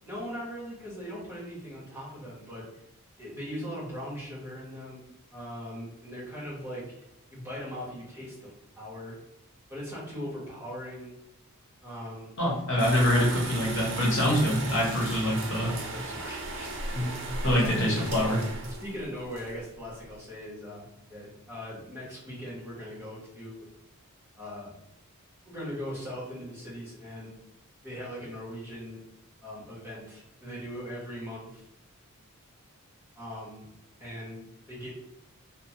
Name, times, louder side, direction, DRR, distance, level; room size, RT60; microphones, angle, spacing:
voice 1, 0.0-2.7 3.2-6.9 7.3-8.5 8.8-9.2 9.7-11.1 11.8-12.3 15.7-17.1 17.6-17.8 18.8-23.6 24.4-24.7 25.5-27.3 27.8-29.0 29.4-31.6 33.1-33.7 34.0-34.9, equal, 10° right, -7 dB, 1.0 m, -40 dB
voice 2, 12.4-15.7 16.9-17.1 17.4-18.4, equal, 55° left, -4 dB, 1.1 m, -25 dB
sound 1, 12.8-20.1, right 2 dB, 55° right, 0.5 m, -36 dB
3.0 x 2.0 x 2.8 m, 0.85 s
head